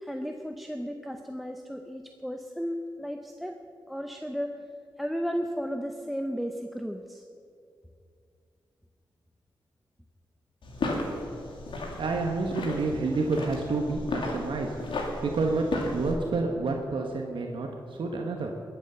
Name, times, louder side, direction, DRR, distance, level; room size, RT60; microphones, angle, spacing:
voice 1, 0.0-3.6 3.9-4.6 5.0-7.2, equal, ahead, 5 dB, 0.7 m, -34 dB
sound 1, 10.6-16.1, left 2 dB, 75° left, 2.6 m, -34 dB
voice 2, 11.8-18.5, right 3 dB, 75° right, 1 dB, 1.4 m, -29 dB
21.0 x 8.4 x 6.9 m, 2.4 s
wide cardioid pair, 140°, 9 cm